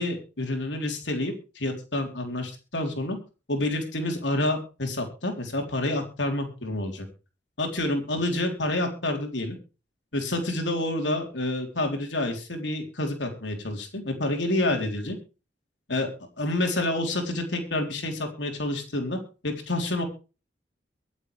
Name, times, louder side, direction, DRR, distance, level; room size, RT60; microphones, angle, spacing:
voice 1, 0.0-3.2 3.5-7.1 7.6-9.6 10.1-15.2 15.9-16.1 16.4-19.2 19.4-20.0, left 1 dB, 85° left, 3 dB, 3.8 m, -28 dB
24.0 x 8.1 x 3.4 m, 0.33 s
head